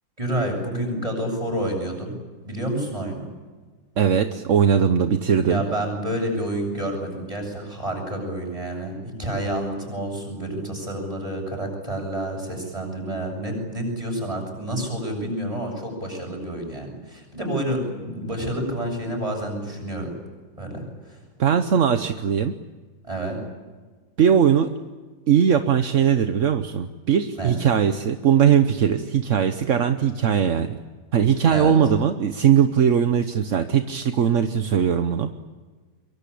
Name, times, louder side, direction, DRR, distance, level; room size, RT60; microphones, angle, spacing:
voice 1, 0.2-2.1 2.4-3.3 5.4-20.1 20.6-21.2 23.0-23.4 27.4-27.5 31.5-31.8, right 1 dB, 15° right, 2 dB, 7.8 m, -29 dB
voice 2, 4.0-5.6 21.4-22.5 24.2-24.7 25.3-30.8 31.1-35.3, right 8 dB, 50° right, 9 dB, 1.1 m, -20 dB
24.5 x 23.5 x 8.6 m, 1.3 s
omnidirectional pair, 2.1 m